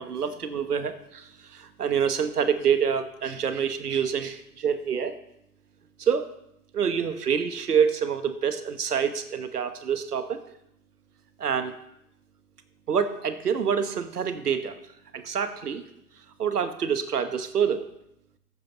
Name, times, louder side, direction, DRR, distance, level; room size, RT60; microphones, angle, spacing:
voice 1, 0.0-5.2 6.0-6.3 6.7-10.4 11.4-11.7 12.9-14.8 15.1-15.8 16.4-17.9, right 7 dB, 75° right, 10 dB, 1.2 m, -26 dB
14.0 x 10.5 x 2.9 m, 0.80 s
figure-of-eight pair, 115°, 47 cm